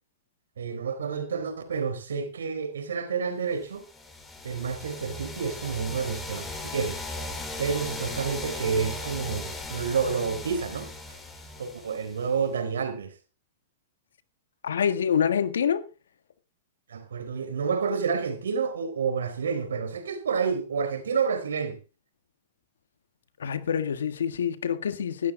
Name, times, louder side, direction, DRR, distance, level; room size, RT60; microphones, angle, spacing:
voice 1, 0.6-3.9 4.4-7.0 7.6-10.9 11.6-13.1 16.9-21.8, right 6 dB, 85° right, 4.1 m, -29 dB
sound 1, 3.7-12.5, left 2 dB, 15° left, 3.7 m, -38 dB
voice 2, 14.6-15.8 23.4-25.3, left 8 dB, 80° left, 1.6 m, -26 dB
16.5 x 12.5 x 3.8 m
hypercardioid pair, 115°, 0 cm